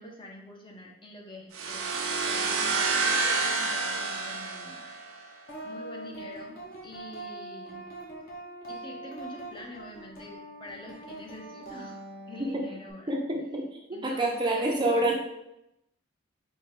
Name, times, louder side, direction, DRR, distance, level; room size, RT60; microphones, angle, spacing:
voice 1, 0.0-4.9 5.6-7.9 8.7-12.0 12.3-13.1 13.9-15.1, left 1 dB, 25° left, 0 dB, 0.6 m, -45 dB
sound 1, 1.5-5.3, right 4 dB, 75° right, 0.6 m, -28 dB
sound 2, 5.5-12.9, right 1 dB, 45° left, 1.0 m, -43 dB
voice 2, 13.1-15.1, right 2 dB, 20° right, 0 dB, 0.5 m, -27 dB
4.4 x 2.2 x 4.7 m, 0.86 s
head